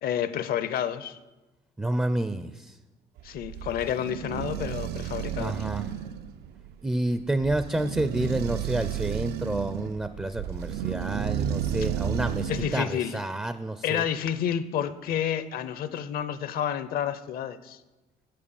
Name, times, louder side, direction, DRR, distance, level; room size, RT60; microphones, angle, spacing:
voice 1, 0.0-1.2 3.2-5.5 12.5-13.2 13.8-17.8, left 9 dB, 65° left, 14 dB, 0.6 m, -30 dB
voice 2, 1.8-2.8 5.4-5.9 6.8-14.0, right 1 dB, 5° right, 11 dB, 0.4 m, -29 dB
sound 1, 3.2-12.9, right 9 dB, 75° right, 0.5 m, -32 dB
7.9 x 7.6 x 7.0 m, 1.1 s
cardioid pair, 110°, 17 cm